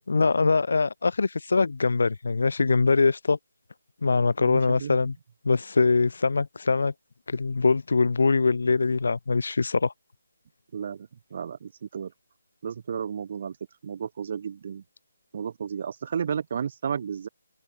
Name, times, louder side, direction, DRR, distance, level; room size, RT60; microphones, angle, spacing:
voice 1, 0.1-3.4 4.0-5.1 5.4-6.9 7.3-9.9, left 4 dB, 65° left, 0.6 m, -23 dB
voice 2, 4.4-5.0 10.7-12.1 12.6-13.6 13.8-14.8 15.3-17.3, right 7 dB, 35° right, 6.2 m, -33 dB
hypercardioid pair, 170°, 0 cm